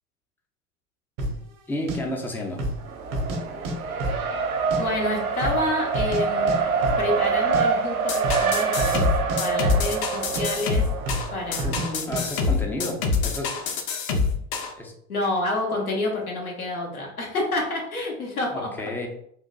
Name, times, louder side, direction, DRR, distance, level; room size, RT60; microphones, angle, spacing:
sound 1, 1.2-1.4 1.9-2.0 2.5-2.8 3.1-3.7 4.0-4.8 5.1-5.2 5.4-6.2 6.5-6.6 6.8-7.0 7.3-7.6 8.1-8.5 8.7-9.0 9.3-10.1 10.3-10.5 11.0-11.3 11.6-11.9 12.1-12.2, right 1 dB, 55° right, 0.9 m, -29 dB
voice 1, 1.7-2.7 11.5-13.6 14.8-14.9 18.5-19.1, left 1 dB, 5° left, 1 dB, 0.4 m, -32 dB
Race car auto racing, 2.8-11.9, right 5 dB, 85° right, 0.5 m, -26 dB
voice 2, 4.8-9.1 9.4-10.9 11.3-12.2 15.1-18.7, left 2 dB, 85° left, -1 dB, 1.0 m, -28 dB
sound 2, 8.1-14.7, left 4 dB, 45° left, 0.6 m, -26 dB
3.8 x 2.5 x 2.2 m, 0.69 s
figure-of-eight pair, 75°, 42 cm